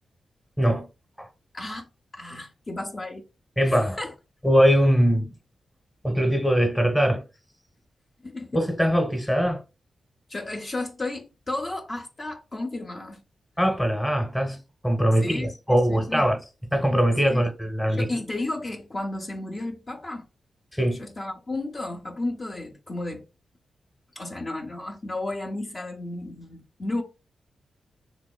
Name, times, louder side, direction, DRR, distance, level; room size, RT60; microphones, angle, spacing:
voice 1, 1.5-1.9 2.1-3.3 3.6-4.1 8.2-8.6 10.3-13.2 15.2-16.3 17.3-17.5 17.9-20.3 21.0-23.2 24.2-27.0, left 2 dB, 40° left, 0.6 m, -33 dB
voice 2, 3.6-4.0 4.4-5.3 6.0-7.2 8.5-9.6 13.6-14.6 14.8-16.4 16.7-18.1 20.7-21.0, equal, 5° left, 0.9 m, -21 dB
3.4 x 3.0 x 2.2 m
cardioid pair, 75°, 0 cm